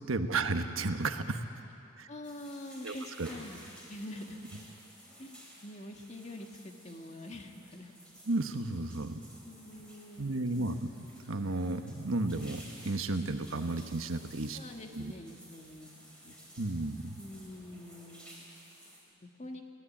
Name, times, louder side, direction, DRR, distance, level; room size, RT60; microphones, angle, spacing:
voice 1, 0.1-1.4 2.0-2.1 2.8-3.3 8.3-9.2 10.2-14.6 15.0-15.1 16.6-17.2, right 2 dB, 85° right, 7 dB, 1.2 m, -33 dB
voice 2, 2.1-3.6 3.9-4.4 5.0-7.9 9.4-10.9 14.5-16.4 17.2-18.5 18.9-19.6, left 1 dB, 35° left, 3 dB, 1.8 m, -46 dB
sound 1, 2.2-19.0, equal, 5° left, 4.8 m, -54 dB
23.5 x 18.5 x 8.7 m, 2.7 s
head